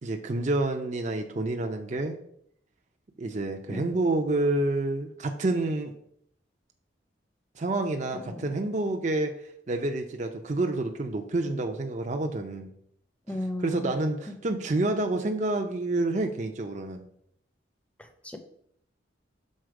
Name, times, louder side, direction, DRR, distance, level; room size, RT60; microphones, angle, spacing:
voice 1, 0.0-2.2 3.2-5.9 7.6-12.7 13.6-17.0, right 2 dB, 40° right, 4 dB, 0.5 m, -28 dB
voice 2, 8.1-8.5 13.3-14.0 14.3-14.4 18.0-18.4, left 1 dB, 5° left, 6 dB, 0.6 m, -36 dB
6.5 x 4.1 x 4.7 m, 0.69 s
head